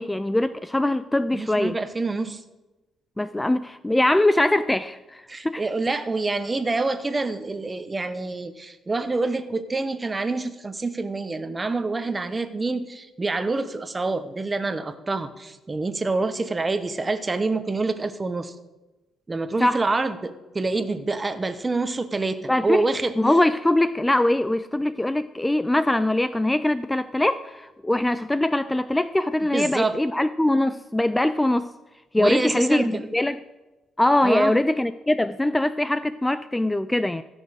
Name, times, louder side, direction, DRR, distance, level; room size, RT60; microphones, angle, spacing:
voice 1, 0.0-1.8 3.2-5.6 19.6-19.8 22.5-22.8 23.2-31.7 32.1-33.4 34.0-37.2, left 1 dB, 10° left, 14 dB, 0.4 m, -22 dB
voice 2, 1.3-2.4 5.3-18.5 19.3-23.1 29.5-30.0 32.2-33.1 34.2-34.6, right 3 dB, 25° right, 12 dB, 1.0 m, -27 dB
16.0 x 6.4 x 6.4 m, 1.1 s
cardioid pair, 90°, 0 cm